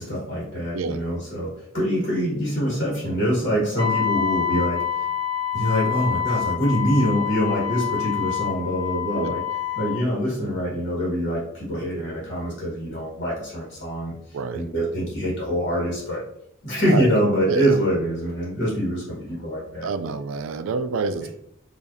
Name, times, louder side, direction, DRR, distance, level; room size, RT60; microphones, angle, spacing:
voice 1, 0.0-4.8 5.5-9.4 9.8-14.1 14.5-16.2 16.6-19.9, equal, 50° left, -5 dB, 1.3 m, -24 dB
Wind instrument woodwind instrument, 3.8-10.0, left 9 dB, 25° left, 0.4 m, -27 dB
voice 2, 14.3-14.7 16.8-17.1 17.4-17.8 19.8-21.3, right 4 dB, 80° right, 11 dB, 0.3 m, -27 dB
4.8 x 2.5 x 2.6 m, 0.74 s
head